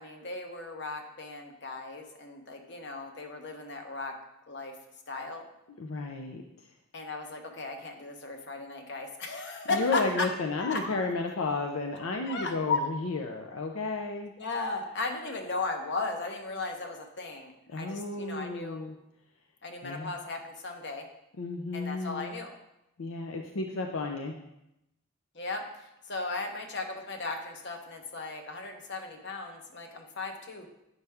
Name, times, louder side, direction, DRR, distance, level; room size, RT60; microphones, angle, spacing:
voice 1, 0.0-4.1 4.5-4.7 5.1-5.5 6.9-10.3 10.6-11.1 12.3-12.8 14.4-18.8 19.6-21.1 21.7-22.5 25.3-30.7, left 3 dB, 55° left, 4 dB, 1.0 m, -36 dB
voice 2, 5.8-6.4 9.7-14.3 17.7-18.9 19.8-20.1 21.4-22.3 23.0-24.3, left 3 dB, 80° left, 3 dB, 0.6 m, -32 dB
8.0 x 5.5 x 3.5 m, 0.86 s
head